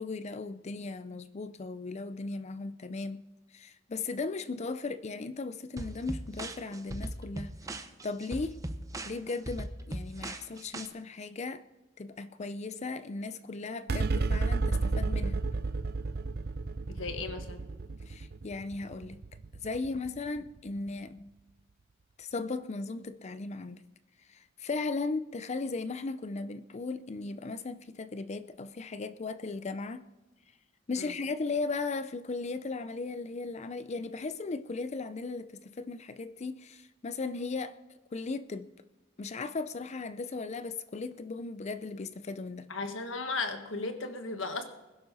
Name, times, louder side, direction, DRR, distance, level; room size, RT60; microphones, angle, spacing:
voice 1, 0.0-3.2 3.5-8.6 9.0-11.6 12.0-15.4 18.1-19.2 19.6-21.3 22.2-23.8 24.3-30.0 30.9-37.8 38.1-38.7 39.2-42.7, left 3 dB, 35° left, 0.5 m, -37 dB
sound 1, 5.8-10.9, right 1 dB, 15° right, 0.8 m, -39 dB
sound 2, 13.9-20.6, right 3 dB, 55° right, 0.6 m, -32 dB
voice 2, 16.9-17.6 31.0-31.1 42.7-44.6, left 3 dB, 80° left, 1.6 m, -35 dB
21.0 x 11.5 x 4.1 m
head